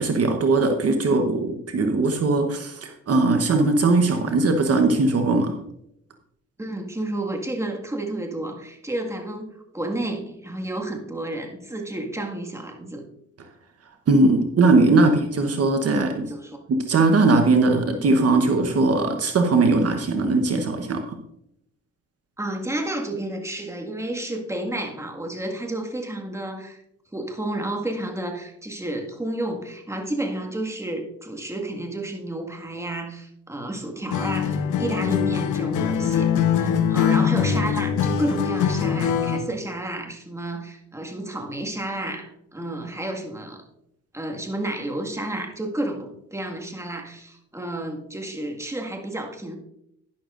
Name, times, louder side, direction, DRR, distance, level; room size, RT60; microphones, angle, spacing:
voice 1, 0.0-5.5 14.1-16.3 16.7-21.0, right 3 dB, 50° right, 5 dB, 1.1 m, -20 dB
voice 2, 6.6-13.0 15.9-16.6 22.4-26.8 27.1-43.6 44.1-49.6, right 1 dB, 10° right, 2 dB, 1.8 m, -31 dB
Acoustic guitar, 34.1-39.5, left 7 dB, 80° left, 1.1 m, -22 dB
11.5 x 10.5 x 2.6 m, 0.76 s
cardioid pair, 90°, 30 cm